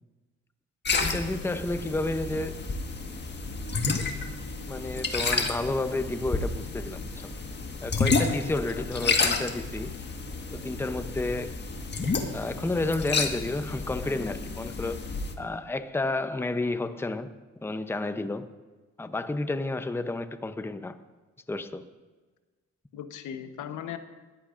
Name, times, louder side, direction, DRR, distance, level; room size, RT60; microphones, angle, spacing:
sound 1, 0.8-15.3, left 4 dB, 35° left, 1.6 m, -30 dB
voice 1, 1.0-2.6 4.7-7.3 7.8-9.9 10.5-11.6 12.3-15.0 15.4-17.3 17.6-18.5 19.0-21.0 21.5-21.8, left 2 dB, 10° left, 10 dB, 0.7 m, -31 dB
voice 2, 8.5-9.1 22.9-24.0, left 9 dB, 80° left, 9 dB, 1.1 m, -39 dB
20.0 x 14.5 x 2.6 m, 1.3 s
cardioid pair, 90°, 30 cm